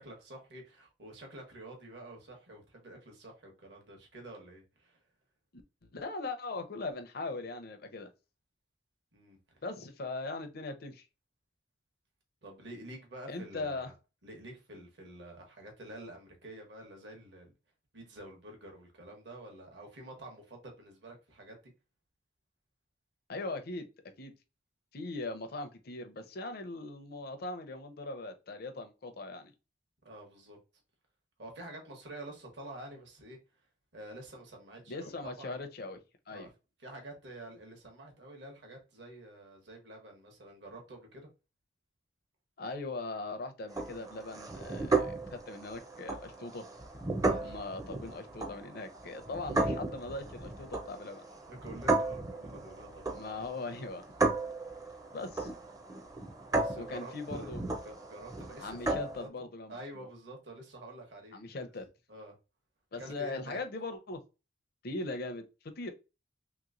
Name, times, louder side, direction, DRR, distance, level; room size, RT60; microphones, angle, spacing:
voice 1, 0.0-5.0 9.1-9.4 12.4-13.9 14.2-17.5 17.9-21.6 30.0-30.6 31.4-33.4 33.9-35.6 36.3-36.5 36.8-41.3 47.2-47.7 51.5-53.1 56.5-57.6 57.8-59.3 59.7-61.6 62.1-62.3 63.0-63.6, right 1 dB, 65° right, 1.1 m, -48 dB
voice 2, 5.5-8.1 9.6-11.0 13.3-13.9 23.3-23.9 24.2-24.3 24.9-29.5 34.9-36.0 36.3-36.5 42.6-46.7 47.4-51.2 53.1-54.0 55.1-55.5 56.7-57.6 58.6-59.8 61.3-61.9 62.9-64.2 64.8-65.9, left 2 dB, 55° left, 0.6 m, -40 dB
sound 1, 43.7-59.3, right 3 dB, 20° right, 0.5 m, -35 dB
3.2 x 3.0 x 2.5 m
head